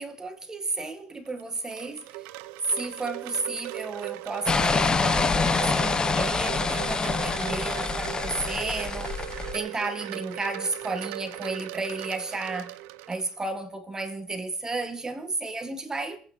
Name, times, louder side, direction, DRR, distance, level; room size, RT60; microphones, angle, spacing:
voice 1, 0.0-2.2 2.7-9.1 9.5-12.7 13.1-16.2, right 3 dB, 20° right, 1.9 m, -33 dB
Wind chime, 1.3-13.5, right 16 dB, 75° right, 0.6 m, -38 dB
sound 1, 4.5-9.5, left 4 dB, 25° left, 1.1 m, -26 dB
26.0 x 8.9 x 4.4 m
supercardioid pair, 85°, 3 cm